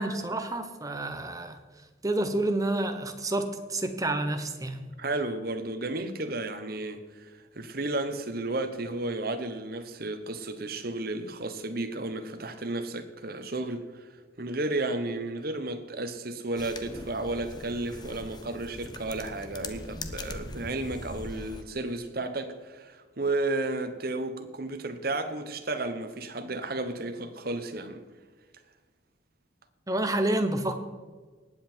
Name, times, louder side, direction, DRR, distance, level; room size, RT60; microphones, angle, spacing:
voice 1, 0.0-1.6 2.0-4.8 29.9-30.8, right 1 dB, 20° right, 1.0 m, -29 dB
voice 2, 5.0-14.1 14.4-28.0, right 2 dB, 50° right, 1.1 m, -33 dB
sound 1, 16.6-21.6, left 2 dB, 20° left, 0.8 m, -41 dB
19.0 x 7.7 x 4.5 m
head